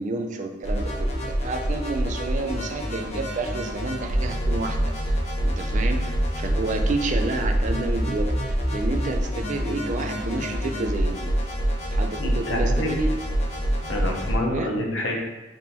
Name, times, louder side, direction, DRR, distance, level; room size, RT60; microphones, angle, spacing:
voice 1, 0.0-4.8 5.1-5.2 5.4-11.3 11.9-13.1 14.5-14.7, right 2 dB, 40° right, 5 dB, 0.4 m, -30 dB
sound 1, 0.6-14.3, equal, 35° left, 0.9 m, -26 dB
voice 2, 12.2-12.9 13.9-15.2, left 1 dB, 85° left, 0 dB, 0.8 m, -28 dB
3.6 x 2.6 x 4.3 m, 1.1 s
head